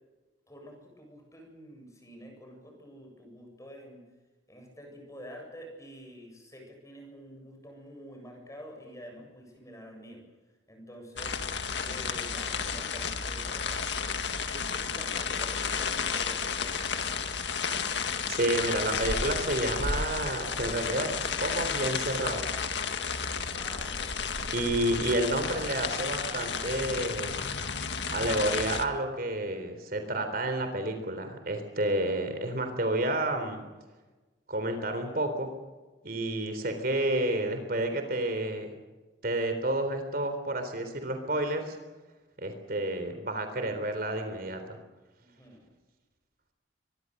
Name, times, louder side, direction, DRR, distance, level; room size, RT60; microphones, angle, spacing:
voice 1, 0.5-4.0 4.5-10.2 10.7-11.3 11.8-13.9 14.6-16.8 23.5-24.2 45.2-45.7, equal, 15° left, 2 dB, 7.6 m, -48 dB
sound 1, 11.2-28.8, left 5 dB, 65° left, 1.9 m, -32 dB
voice 2, 18.3-22.6 24.5-27.4 28.1-33.6 34.5-35.5 36.0-38.7 39.2-41.8 42.4-44.8, right 1 dB, 50° right, 7 dB, 3.7 m, -30 dB
24.5 x 22.5 x 6.7 m, 1.2 s
head